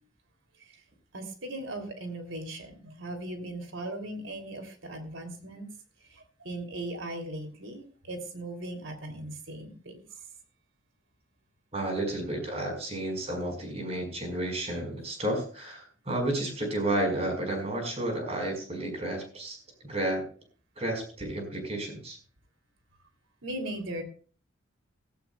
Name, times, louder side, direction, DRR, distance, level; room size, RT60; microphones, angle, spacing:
voice 1, 1.1-5.7 6.0-10.0 23.4-24.0, right 1 dB, 85° right, 6 dB, 3.1 m, -38 dB
voice 2, 11.7-19.6 19.8-20.2 20.8-22.2, right 1 dB, 35° right, 3 dB, 5.0 m, -31 dB
16.5 x 15.0 x 2.3 m, 0.39 s
head